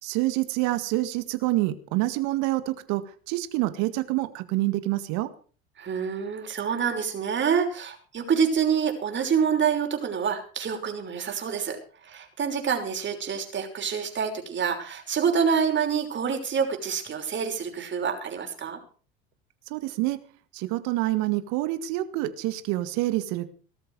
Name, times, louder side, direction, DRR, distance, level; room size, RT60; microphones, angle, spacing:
voice 1, 0.0-5.3 19.7-20.2 20.5-23.5, right 17 dB, 65° right, 11 dB, 2.0 m, -27 dB
voice 2, 5.8-11.8 12.0-18.8, right 7 dB, 40° right, 4 dB, 5.8 m, -27 dB
19.0 x 13.5 x 4.9 m, 0.40 s
hypercardioid pair, 75°, 30 cm